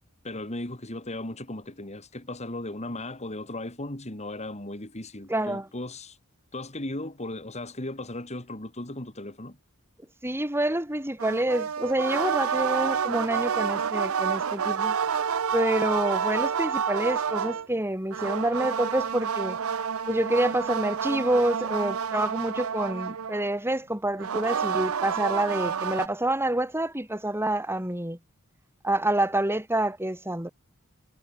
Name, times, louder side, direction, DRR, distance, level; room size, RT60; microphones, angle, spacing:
voice 1, 0.2-6.2 6.5-9.6, left 1 dB, 30° left, 3.0 m, -36 dB
voice 2, 5.3-5.7 10.2-15.0 15.5-19.6 20.1-28.2 28.8-30.5, right 1 dB, 10° right, 3.7 m, -27 dB
sound 1, 11.2-17.7 18.1-23.5 24.2-26.1, right 7 dB, 70° right, 0.6 m, -29 dB
head